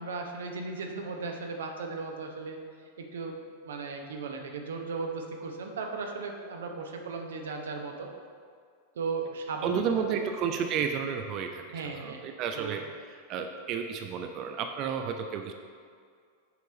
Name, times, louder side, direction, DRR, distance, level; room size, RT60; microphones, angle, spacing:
voice 1, 0.0-2.6 3.0-3.4 3.6-8.1 9.0-10.2 11.7-12.3 12.5-12.8, right 4 dB, 60° right, 3 dB, 0.8 m, -36 dB
voice 2, 9.6-15.5, right 7 dB, 40° right, 5 dB, 0.4 m, -32 dB
6.9 x 4.7 x 5.0 m, 2.1 s
figure-of-eight pair, 90°, 0 cm